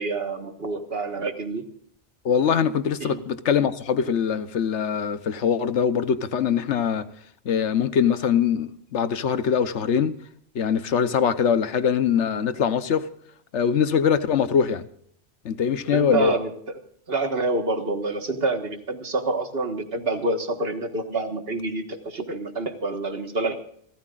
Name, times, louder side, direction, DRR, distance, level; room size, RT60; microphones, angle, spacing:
voice 1, 0.0-1.6 3.0-3.2 15.9-16.8 17.1-23.7, right 2 dB, 55° right, 1.8 m, -27 dB
voice 2, 2.2-7.1 7.4-10.2 10.5-13.1 13.5-14.8 15.4-16.3, left 7 dB, 75° left, 1.2 m, -22 dB
28.5 x 14.0 x 2.4 m
omnidirectional pair, 1.2 m